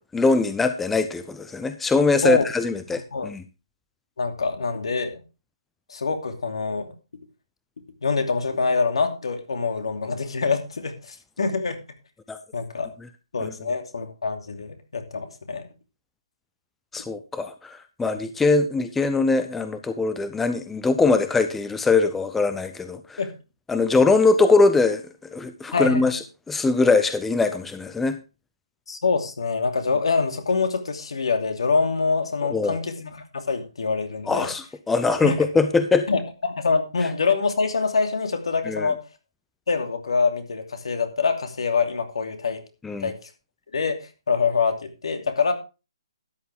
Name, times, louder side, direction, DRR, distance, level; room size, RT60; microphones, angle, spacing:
voice 1, 0.1-3.4 12.3-12.4 13.4-13.5 16.9-23.2 23.7-28.2 32.5-32.8 34.3-36.1 38.7-38.9 42.8-43.1, left 3 dB, 5° left, 10 dB, 0.5 m, -22 dB
voice 2, 4.2-5.2 5.9-6.9 8.0-11.8 12.5-12.9 13.3-15.6 23.2-23.3 25.7-26.1 28.9-34.5 35.2-35.3 36.1-39.0 39.7-42.6 43.0-43.2 43.7-45.5, left 4 dB, 75° left, 6 dB, 2.8 m, -25 dB
12.5 x 9.4 x 3.5 m, 0.31 s
hypercardioid pair, 165°, 3 cm